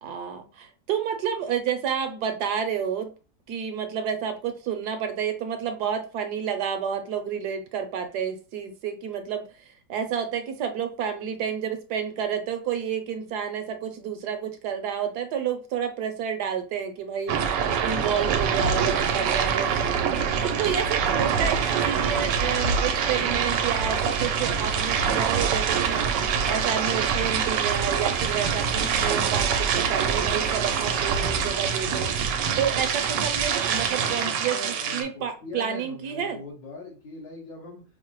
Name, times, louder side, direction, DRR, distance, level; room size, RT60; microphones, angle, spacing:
voice 1, 0.0-3.1 3.5-9.5 9.9-17.3 17.8-20.0 20.4-32.1 32.6-36.4, right 7 dB, 75° right, 7 dB, 1.2 m, -30 dB
sound 1, 17.3-35.0, right 7 dB, 90° right, 1.3 m, -25 dB
voice 2, 33.7-37.8, left 1 dB, 85° left, -3 dB, 2.3 m, -41 dB
5.5 x 2.0 x 3.0 m, 0.35 s
omnidirectional pair, 1.9 m